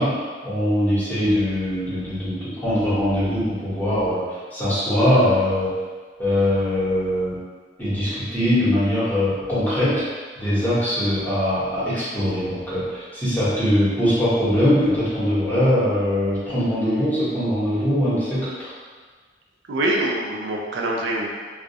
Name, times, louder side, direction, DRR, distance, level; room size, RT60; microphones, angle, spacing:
voice 1, 0.0-5.7 6.2-7.4 7.8-18.7, equal, 10° left, -11 dB, 0.8 m, -22 dB
voice 2, 19.7-21.3, right 1 dB, 80° right, -1 dB, 0.4 m, -24 dB
2.3 x 2.0 x 2.6 m, 1.5 s
head